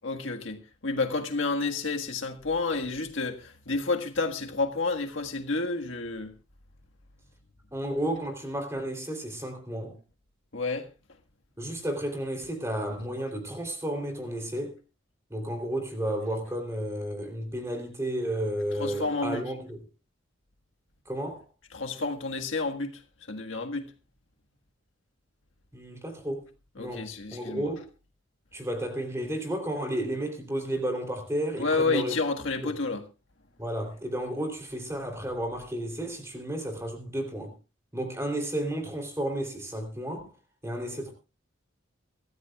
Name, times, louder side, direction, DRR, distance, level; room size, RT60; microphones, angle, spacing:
voice 1, 0.0-6.3 10.5-10.9 18.7-19.4 21.7-23.0 23.3-23.9 26.8-27.7 31.6-33.0, left 3 dB, 75° left, 1.6 m, -30 dB
voice 2, 7.7-10.0 11.6-14.8 15.3-19.8 21.0-21.3 25.7-26.5 26.8-27.8 28.5-32.1 33.6-37.5 37.9-40.3 40.6-41.1, right 1 dB, 15° right, 3.2 m, -32 dB
24.0 x 13.5 x 2.4 m
head